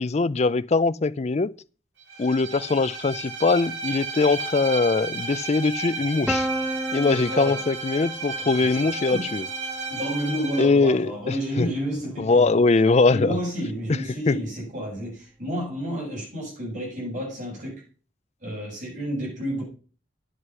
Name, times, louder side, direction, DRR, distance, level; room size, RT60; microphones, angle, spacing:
voice 1, 0.0-1.5 2.2-6.5 6.9-9.5 10.6-11.7 12.2-13.4 14.3-14.4, left 3 dB, 35° left, 0.4 m, -22 dB
Bowed string instrument, 2.1-10.7, right 4 dB, 65° right, 2.5 m, -33 dB
Piano, 6.3-12.0, right 1 dB, 5° right, 0.8 m, -35 dB
voice 2, 7.3-7.6 8.7-8.8 9.1-9.3 9.9-12.6 13.1-17.8 18.4-19.6, equal, 40° right, 7.4 m, -30 dB
9.9 x 7.9 x 5.5 m
head